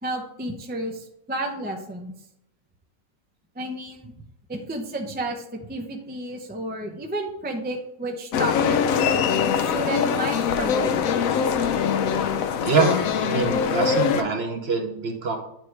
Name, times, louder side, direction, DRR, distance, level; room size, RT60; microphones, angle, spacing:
voice 1, 0.0-2.1 3.6-4.1 4.5-5.4 5.7-9.0 9.6-11.1, right 1 dB, 15° right, 2 dB, 0.4 m, -32 dB
sound 1, 8.3-14.2, left 7 dB, 70° left, 1.0 m, -23 dB
voice 2, 12.6-15.4, right 4 dB, 50° right, 3 dB, 1.1 m, -24 dB
9.1 x 3.2 x 4.6 m, 0.79 s
omnidirectional pair, 1.6 m